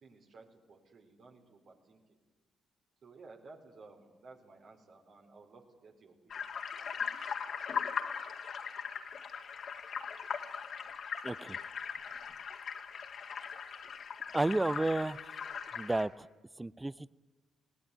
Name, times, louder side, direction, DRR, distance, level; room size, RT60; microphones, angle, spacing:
voice 1, 0.0-2.2 3.0-6.4, right 3 dB, 55° right, 3 dB, 3.9 m, -56 dB
sound 1, 6.3-16.0, left 6 dB, 55° left, 2.3 m, -40 dB
voice 2, 11.2-11.6 14.3-15.2 15.8-16.1 16.6-16.9, right 2 dB, 15° right, 22 dB, 0.6 m, -31 dB
19.5 x 18.5 x 9.3 m, 1.3 s
figure-of-eight pair, 40°, 0 cm